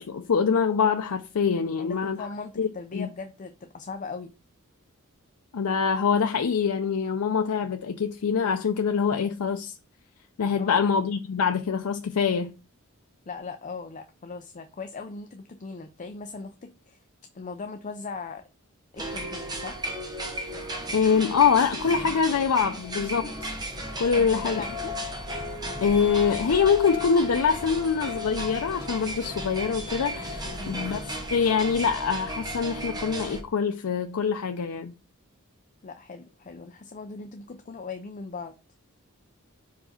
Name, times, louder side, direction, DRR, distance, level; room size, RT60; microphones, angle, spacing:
voice 1, 0.0-2.3 2.6-3.1 5.5-9.8 10.4-12.5 20.9-23.5 24.0-24.6 25.8-31.0 31.3-34.9, left 6 dB, 90° left, 0.5 m, -24 dB
voice 2, 1.8-4.3 10.5-10.8 13.3-17.0 17.3-18.4 18.9-19.8 24.0-24.9 30.4-30.8 35.8-38.5, left 4 dB, 35° left, 0.5 m, -39 dB
sound 1, 18.9-33.4, equal, 20° right, 1.0 m, -34 dB
5.1 x 4.7 x 4.3 m
head